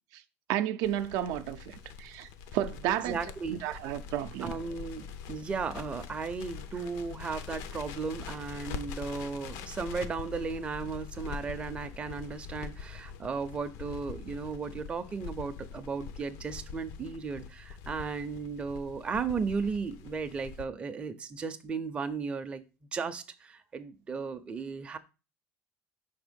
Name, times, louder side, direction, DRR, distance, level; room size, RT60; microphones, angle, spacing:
voice 1, 0.5-3.2 3.5-4.5, right 12 dB, 75° right, 0.5 m, -32 dB
Crackle, 0.8-20.6, left 6 dB, 75° left, 0.6 m, -44 dB
voice 2, 2.9-3.6 4.4-22.6 22.9-25.0, right 5 dB, 20° right, 0.4 m, -35 dB
5.6 x 3.5 x 5.1 m
cardioid pair, 165°, 6 cm